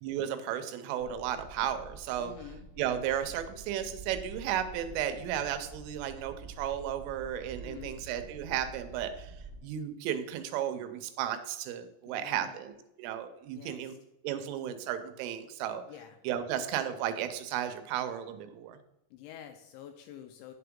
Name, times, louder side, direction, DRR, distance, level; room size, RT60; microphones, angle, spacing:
voice 1, 0.0-2.3 2.8-9.3 9.6-14.0 14.2-15.8 16.2-18.8, right 10 dB, 85° right, 9 dB, 3.2 m, -34 dB
sound 1, 1.0-9.6, right 3 dB, 65° right, 1.1 m, -48 dB
voice 2, 2.2-2.7 7.6-8.0 12.1-12.6 13.5-14.0 15.9-16.2 19.1-20.5, left 10 dB, 85° left, 6 dB, 2.7 m, -48 dB
9.0 x 6.8 x 3.6 m, 0.85 s
omnidirectional pair, 5.7 m